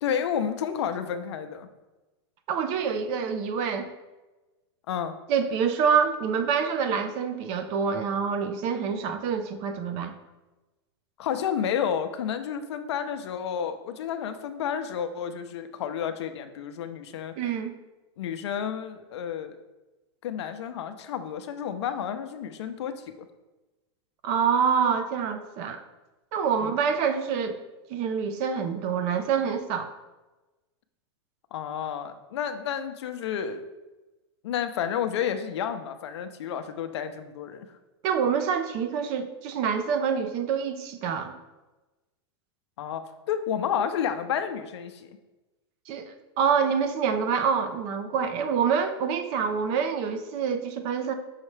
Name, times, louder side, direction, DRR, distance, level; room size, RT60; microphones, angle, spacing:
voice 1, 0.0-1.7 4.9-5.1 11.2-17.3 18.2-19.6 20.2-23.3 26.6-26.7 31.5-33.6 34.4-37.7 42.8-45.1, left 8 dB, 75° left, 9 dB, 0.7 m, -31 dB
voice 2, 2.5-3.9 5.3-10.1 17.4-17.7 24.2-25.8 26.3-27.6 27.9-29.9 38.0-41.3 45.9-51.1, right 6 dB, 45° right, 8 dB, 0.7 m, -26 dB
6.2 x 5.7 x 3.2 m, 1.1 s
supercardioid pair, 130°, 14 cm